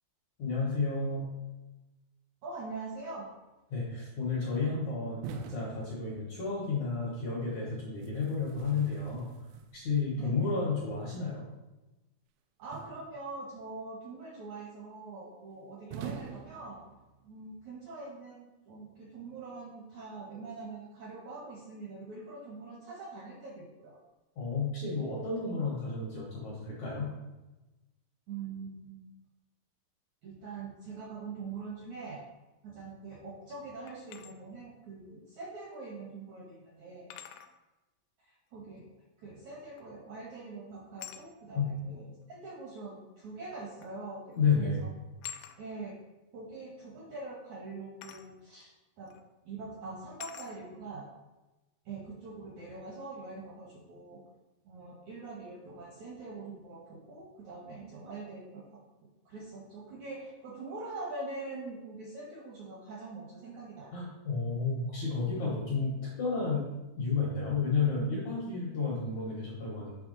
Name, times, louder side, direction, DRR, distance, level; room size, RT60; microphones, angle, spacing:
voice 1, 0.4-1.3 3.7-9.3 9.7-11.4 24.4-27.1 41.5-41.7 44.3-44.8 63.9-66.7 67.0-70.0, left 4 dB, 65° left, -5 dB, 1.8 m, -31 dB
voice 2, 2.4-3.3 10.2-10.5 12.6-16.8 17.2-24.0 28.3-29.1 30.2-32.2 32.6-37.1 38.3-38.8 39.2-44.9 45.6-46.0 46.3-49.1 49.5-51.1 51.9-54.2 54.7-58.6 59.3-64.0, right 3 dB, 70° right, -4 dB, 1.8 m, -43 dB
sound 1, 5.2-6.7 8.0-10.1 12.7-13.6 15.9-17.4, right 8 dB, 85° right, 2.7 m, -45 dB
sound 2, 33.9-34.3 35.9-36.0 37.1-37.5 39.8-40.1 41.0-41.3 42.5-42.6 43.8-44.0 44.3-44.6 45.2-45.6 48.0-48.3 49.1-49.2 50.2-50.5, left 10 dB, 80° left, 2.5 m, -46 dB
8.9 x 3.4 x 5.2 m, 1.1 s
omnidirectional pair, 5.0 m